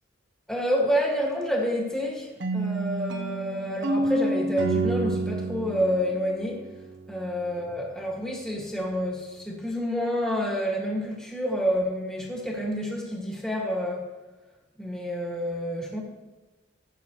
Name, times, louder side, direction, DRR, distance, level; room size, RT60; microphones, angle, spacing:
voice 1, 0.5-6.6 7.1-14.1 14.8-16.0, equal, 5° left, -3 dB, 1.9 m, -28 dB
sound 1, 2.4-7.3, right 2 dB, 60° right, 0.8 m, -29 dB
15.0 x 7.5 x 3.1 m, 1.1 s
head